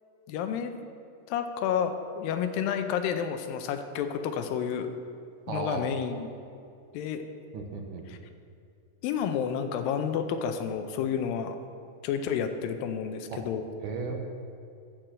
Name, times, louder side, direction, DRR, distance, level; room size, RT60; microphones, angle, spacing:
voice 1, 0.3-0.7 1.3-4.9 5.5-6.3 6.9-7.2 8.1-8.2 9.0-11.6 12.0-13.6, left 8 dB, 85° left, 7 dB, 2.4 m, -30 dB
voice 2, 5.5-5.8 7.5-8.1 13.3-13.4 13.8-14.2, right 5 dB, 75° right, 3 dB, 2.3 m, -35 dB
11.5 x 4.6 x 7.4 m, 2.5 s
omnidirectional pair, 4.0 m